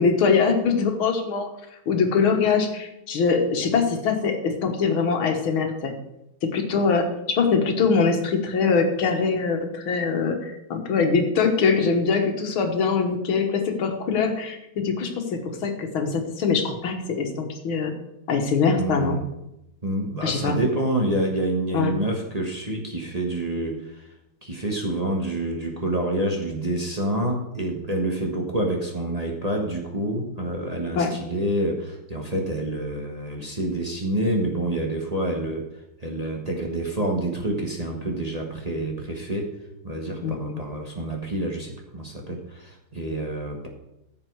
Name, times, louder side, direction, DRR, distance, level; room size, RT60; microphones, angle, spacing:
voice 1, 0.0-1.5 1.9-5.9 6.4-17.9 18.3-19.2 20.2-20.6 21.7-21.9 31.0-31.1 40.2-40.6, left 5 dB, 80° left, 5 dB, 2.2 m, -23 dB
voice 2, 18.8-19.2 19.8-23.8 24.4-35.6 36.0-39.5 39.8-43.7, right 1 dB, 20° right, 0 dB, 1.3 m, -27 dB
15.0 x 7.3 x 4.7 m, 0.88 s
omnidirectional pair, 2.2 m